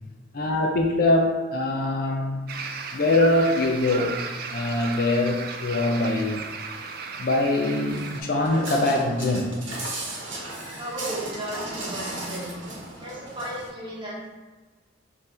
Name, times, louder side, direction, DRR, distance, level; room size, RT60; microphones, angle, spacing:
voice 1, 0.3-2.4 2.9-4.2 4.5-6.4 7.2-9.6, left 2 dB, 50° left, 1 dB, 0.4 m, -23 dB
sound 1, 2.5-8.2, right 5 dB, 50° right, 0.3 m, -35 dB
Walk footsteps, 7.9-13.7, right 2 dB, 70° right, 1.0 m, -35 dB
voice 2, 10.8-12.6 13.0-14.3, right 1 dB, 25° right, -6 dB, 1.0 m, -34 dB
3.8 x 2.6 x 4.2 m, 1.3 s
head